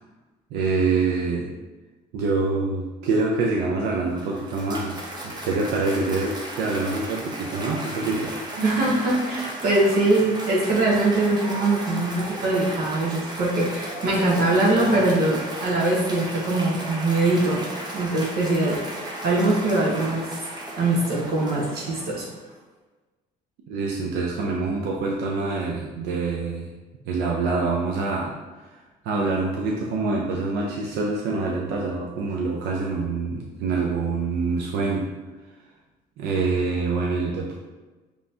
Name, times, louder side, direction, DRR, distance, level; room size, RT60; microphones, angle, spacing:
voice 1, 0.5-1.5 2.1-8.3 8.6-8.7 23.7-26.7 27.1-28.3 29.0-35.1 36.2-37.5, right 3 dB, 85° right, -2 dB, 0.6 m, -25 dB
Cheering / Applause, 3.9-22.5, right 1 dB, 25° right, 0.8 m, -35 dB
voice 2, 8.6-17.6 17.9-20.3 20.8-22.3, right 2 dB, 65° right, -3 dB, 1.1 m, -22 dB
5.3 x 3.0 x 2.8 m, 1.2 s
cardioid pair, 110°, 17 cm